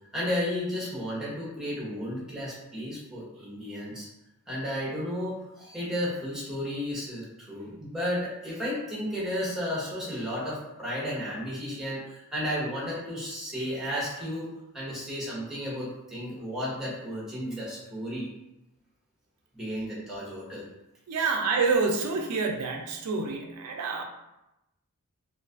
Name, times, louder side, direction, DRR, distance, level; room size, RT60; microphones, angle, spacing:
voice 1, 0.1-4.1 4.5-14.5 14.7-18.3 19.5-20.6, equal, ahead, -7 dB, 0.8 m, -33 dB
voice 2, 21.1-24.0, right 4 dB, 90° right, 2 dB, 0.4 m, -27 dB
2.5 x 2.3 x 2.4 m, 0.92 s
head